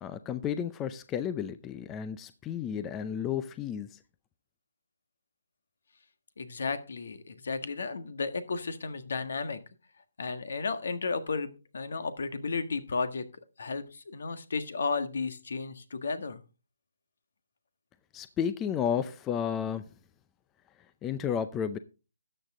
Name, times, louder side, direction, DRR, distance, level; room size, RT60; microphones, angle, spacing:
voice 1, 0.0-4.0 18.1-19.8 21.0-21.8, left 8 dB, 15° left, 0.5 m, -32 dB
voice 2, 6.4-9.6 10.2-13.3 13.6-16.4, left 4 dB, 65° left, 1.6 m, -33 dB
13.0 x 8.1 x 3.7 m
hypercardioid pair, 165°, 0 cm